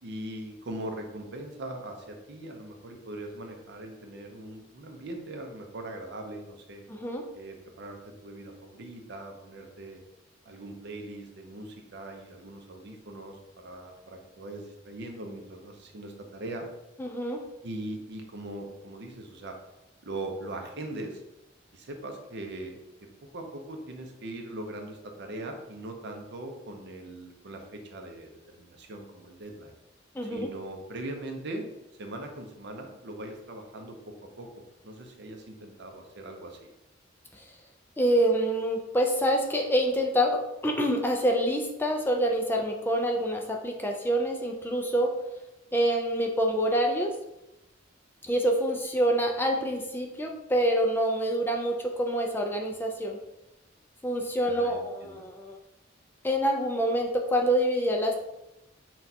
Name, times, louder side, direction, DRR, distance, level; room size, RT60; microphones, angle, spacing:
voice 1, 0.0-6.8 7.3-10.0 10.5-16.7 17.6-19.6 20.0-21.2 21.7-22.8 23.3-29.8 30.3-31.7 32.0-36.7 54.4-55.3, right 1 dB, 60° right, 4 dB, 0.6 m, -40 dB
voice 2, 6.9-7.2 17.0-17.4 30.1-30.5 37.3-37.4 38.0-45.1 45.7-47.1 48.3-53.2 54.0-55.6 56.2-58.2, equal, 10° left, 1 dB, 0.3 m, -26 dB
5.8 x 2.3 x 2.7 m, 0.91 s
head